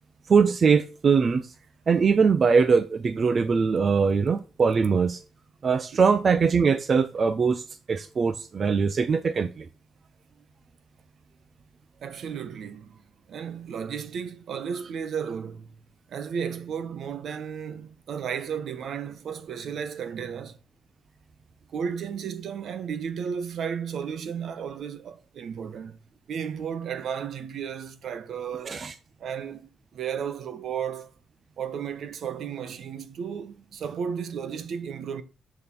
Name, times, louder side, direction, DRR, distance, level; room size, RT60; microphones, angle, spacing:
voice 1, 0.3-1.5 1.9-5.2 5.6-9.7 28.7-28.9, right 5 dB, 35° right, 0.6 m, -22 dB
voice 2, 12.0-13.0 13.3-15.7 16.1-20.6 21.7-26.0 26.3-28.9 29.2-31.1 31.6-35.2, right 7 dB, 60° right, 1.0 m, -34 dB
7.0 x 7.0 x 6.0 m
wide cardioid pair, 165°, 0 cm